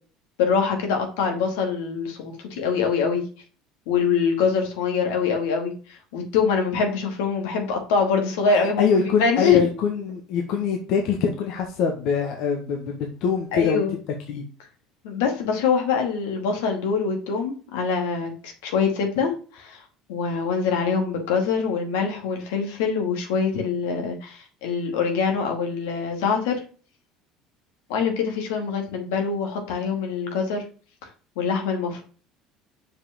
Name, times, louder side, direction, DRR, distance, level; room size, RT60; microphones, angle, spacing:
voice 1, 0.4-3.2 3.9-9.6 13.5-14.0 15.0-19.8 20.1-26.6 27.9-30.6 31.4-32.0, left 5 dB, 85° left, 3 dB, 2.3 m, -24 dB
voice 2, 8.5-13.8 14.3-14.4, left 6 dB, 65° left, 3 dB, 1.4 m, -24 dB
6.4 x 5.2 x 3.6 m, 0.38 s
supercardioid pair, 105°, 0 cm